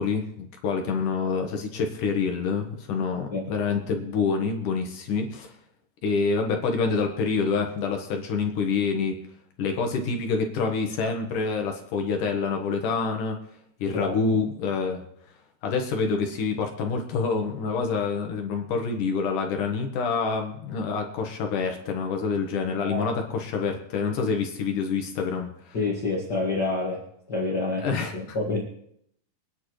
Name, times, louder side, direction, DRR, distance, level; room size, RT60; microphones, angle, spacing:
voice 1, 0.0-5.5 6.0-9.2 9.6-13.4 13.8-15.0 15.6-25.8 27.8-28.1, left 5 dB, 65° left, 3 dB, 2.2 m, -27 dB
voice 2, 25.7-27.0 27.3-28.6, left 3 dB, 50° left, -2 dB, 1.3 m, -28 dB
24.5 x 10.0 x 3.2 m, 0.71 s
omnidirectional pair, 5.0 m